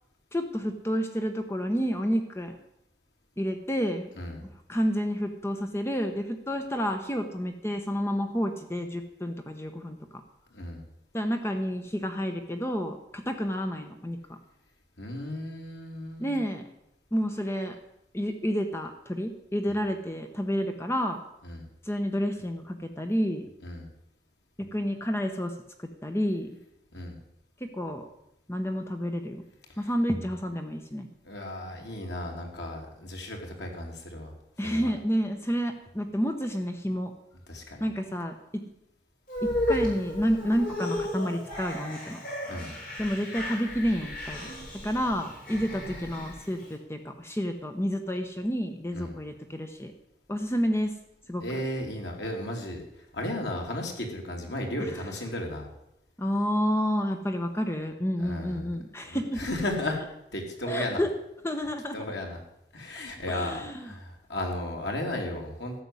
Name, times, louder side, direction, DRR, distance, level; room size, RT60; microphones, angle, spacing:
voice 1, 0.3-2.6 3.4-4.1 4.7-10.0 11.1-14.4 16.2-16.7 17.1-17.8 18.1-21.2 21.8-23.5 24.6-25.5 26.0-26.5 27.6-28.1 28.5-29.4 29.8-31.1 34.6-37.1 37.8-38.6 39.4-42.2 43.0-49.9 50.3-50.9 51.3-51.6 54.8-54.9 56.2-59.5 60.7-61.1 61.4-62.0 63.3-63.9, equal, 15° left, 5 dB, 0.9 m, -30 dB
voice 2, 10.5-10.8 15.0-16.4 21.4-21.6 23.6-23.9 26.9-27.2 31.2-34.3 34.6-34.9 37.5-37.8 42.5-42.7 48.9-49.1 51.4-52.8 53.1-55.7 58.2-58.7 59.0-60.0 60.3-61.0 61.9-62.4 62.7-65.8, left 1 dB, 85° left, 1 dB, 3.1 m, -34 dB
sound 1, 39.3-46.7, left 1 dB, 55° left, 6.7 m, -34 dB
13.5 x 6.9 x 9.6 m, 0.82 s
head